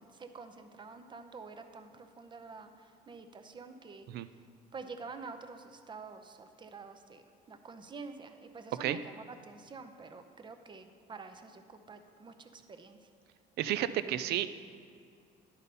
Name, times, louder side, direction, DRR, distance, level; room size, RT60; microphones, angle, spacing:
voice 1, 0.0-4.1 4.7-7.2 7.5-13.0, right 4 dB, 30° right, 7 dB, 0.6 m, -48 dB
voice 2, 13.6-14.5, right 12 dB, 70° right, 13 dB, 0.4 m, -31 dB
11.0 x 4.1 x 5.4 m, 2.4 s
cardioid pair, 110°, 17 cm